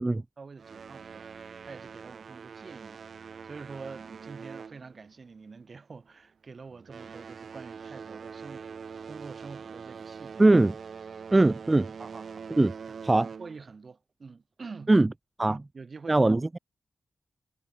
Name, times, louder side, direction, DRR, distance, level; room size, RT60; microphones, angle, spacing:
voice 1, 0.1-8.8 9.1-10.6 12.0-12.6 12.9-15.0 15.5-16.4, right 4 dB, 55° right, 3.0 m, -46 dB
sound 1, 0.6-5.5 5.8-6.1 6.7-13.7, right 6 dB, 75° right, 2.0 m, -44 dB
voice 2, 10.4-10.7 11.3-11.9 12.6-12.7 13.0-13.3 14.9-15.1 15.4-15.6 16.1-16.6, right 2 dB, 25° right, 0.5 m, -21 dB
cardioid pair, 70°, 0 cm